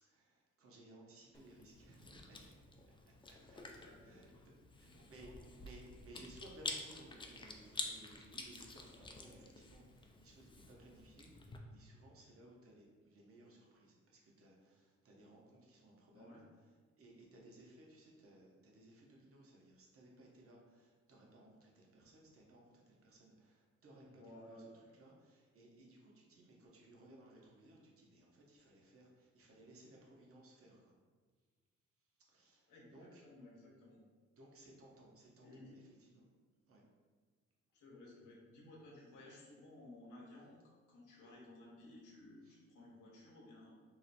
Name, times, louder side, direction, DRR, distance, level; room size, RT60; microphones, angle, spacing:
voice 1, 0.0-2.6 3.2-16.7 17.0-30.9 32.3-33.2 34.4-36.3 36.7-36.8 41.8-41.9 42.4-42.6, right 1 dB, 50° right, -2 dB, 0.9 m, -61 dB
Chewing mastication, 1.3-11.6, left 3 dB, 15° left, 0.3 m, -49 dB
voice 2, 3.8-4.4 4.8-5.1 5.4-5.6 16.1-16.4 24.1-24.7 32.7-34.0 35.4-35.8 37.7-43.7, left 1 dB, 85° left, -2 dB, 0.9 m, -57 dB
3.0 x 2.1 x 4.0 m, 1.5 s
cardioid pair, 90°, 30 cm